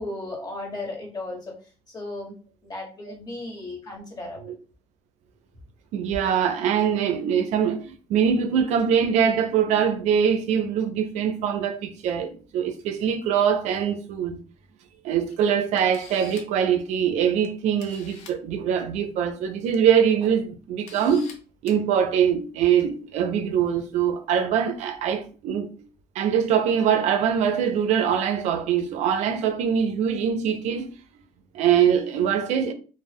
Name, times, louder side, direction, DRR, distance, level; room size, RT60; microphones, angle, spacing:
voice 1, 0.0-1.5 1.9-2.3 2.6-4.5, left 2 dB, 35° left, 1.0 m, -35 dB
voice 2, 5.9-14.4 15.0-21.3 21.6-25.7 26.2-30.9 31.5-32.7, right 8 dB, 75° right, 0.4 m, -23 dB
Camera, 15.3-15.4 15.8-16.6 17.4-17.5 17.8-18.4 19.5-19.8 20.2-20.3 20.9-21.3 21.7-21.8, left 5 dB, 75° left, 0.6 m, -45 dB
2.0 x 2.0 x 3.3 m
cardioid pair, 120°, 12 cm